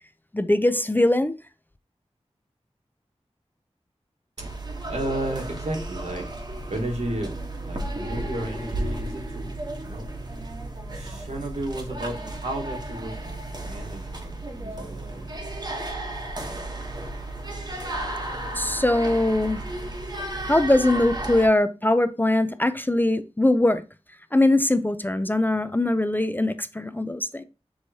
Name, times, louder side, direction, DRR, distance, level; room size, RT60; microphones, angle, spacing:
voice 1, 0.3-1.3 18.5-19.6 20.4-23.8 24.3-27.4, left 1 dB, 15° left, 0.3 m, -21 dB
sound 1, 4.4-21.5, right 1 dB, 35° right, 1.0 m, -33 dB
voice 2, 4.9-6.2 6.7-7.3 7.6-9.5 9.8-10.1 10.9-15.3, right 1 dB, 75° right, 1.4 m, -33 dB
6.2 x 3.0 x 2.7 m
wide cardioid pair, 55°, 12 cm